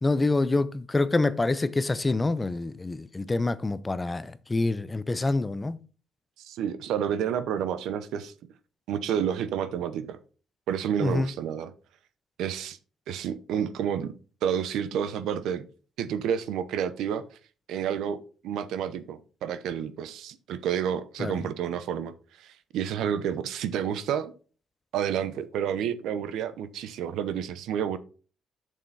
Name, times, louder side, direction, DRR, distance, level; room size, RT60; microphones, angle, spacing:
voice 1, 0.0-5.8 11.0-11.3 21.2-21.4, left 2 dB, 20° left, 0.6 m, -26 dB
voice 2, 6.4-8.3 8.9-10.2 10.7-11.7 12.4-12.8 13.1-14.1 14.4-15.7 16.0-17.2 17.7-22.1 22.4-24.3 24.9-28.0, right 8 dB, 85° right, 0.8 m, -30 dB
7.6 x 6.6 x 4.1 m
cardioid pair, 90°, 0 cm